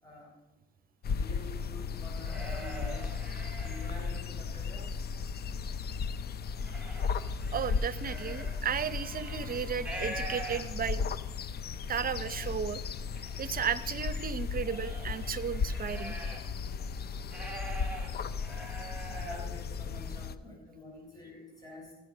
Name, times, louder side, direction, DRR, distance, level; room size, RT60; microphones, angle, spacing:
voice 1, 0.0-0.3 1.1-3.2 3.6-5.1 7.2-7.3 19.1-21.9, left 2 dB, 20° left, -3 dB, 4.4 m, -48 dB
sound 1, 1.0-20.4, left 5 dB, 50° left, 0.7 m, -36 dB
sound 2, 1.9-4.6 5.0-5.8 6.2-11.0 11.6-11.7 11.9-12.6 13.1-16.6 16.9-19.5, right 2 dB, 5° right, 4.4 m, -45 dB
voice 2, 7.5-11.1 11.9-12.8 13.4-16.2, right 7 dB, 45° right, 16 dB, 0.8 m, -34 dB
16.0 x 6.2 x 6.6 m, 0.98 s
supercardioid pair, 70°, 21 cm